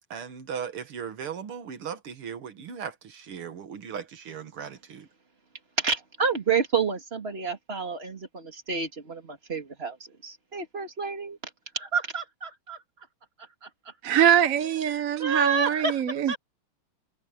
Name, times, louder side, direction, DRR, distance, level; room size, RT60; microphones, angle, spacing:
voice 1, 0.1-5.1, right 7 dB, 80° right, 2.5 m, -37 dB
voice 2, 5.8-11.4 11.7-12.8 13.6-14.2 15.2-16.4, right 5 dB, 25° right, 2.9 m, -29 dB
voice 3, 14.0-16.4, right 10 dB, 50° right, 1.2 m, -23 dB
omnidirectional pair, 2.4 m